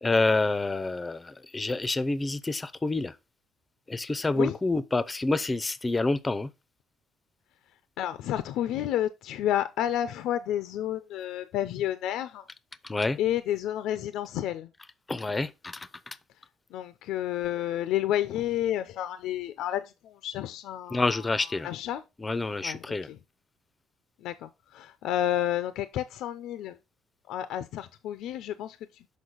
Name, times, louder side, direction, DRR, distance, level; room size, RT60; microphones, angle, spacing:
voice 1, 0.0-3.1 3.9-6.5 12.8-13.2 15.1-16.2 20.9-21.7 22.2-23.1, left 3 dB, 15° left, 0.5 m, -28 dB
voice 2, 8.0-12.4 13.2-14.7 16.7-21.1 21.6-22.0 22.6-23.2 24.2-26.8 27.3-28.8, left 12 dB, 80° left, 0.5 m, -30 dB
6.3 x 5.2 x 3.9 m
cardioid pair, 125°, 0 cm